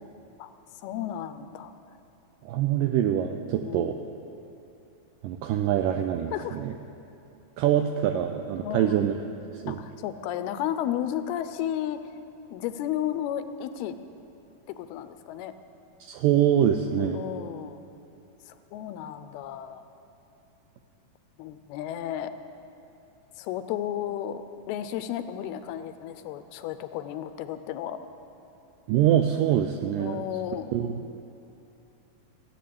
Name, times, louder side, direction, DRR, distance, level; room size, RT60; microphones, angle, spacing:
voice 1, 0.8-1.7 3.6-4.1 6.3-6.6 8.6-9.0 9.7-12.0 12.5-14.0 14.7-15.5 17.0-17.8 18.5-19.9 21.4-22.3 23.4-24.4 24.7-28.0 30.0-30.7, left 11 dB, 85° left, 10 dB, 2.6 m, -33 dB
voice 2, 2.5-4.0 5.2-6.7 7.6-9.2 9.5-9.8 16.0-17.2 28.9-30.3 30.7-31.0, right 10 dB, 85° right, 6 dB, 1.9 m, -24 dB
15.0 x 8.0 x 8.5 m, 2.8 s
omnidirectional pair, 4.4 m